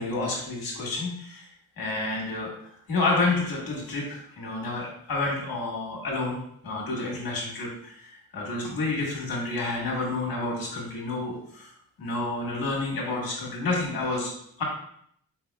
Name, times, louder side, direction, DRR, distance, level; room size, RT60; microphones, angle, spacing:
voice 1, 0.0-1.5 1.8-2.5 2.9-6.4 6.6-11.7 12.0-14.3 14.6-14.7, left 2 dB, 80° left, -2 dB, 1.5 m, -29 dB
4.6 x 3.5 x 2.3 m, 0.68 s
cardioid pair, 115°, 34 cm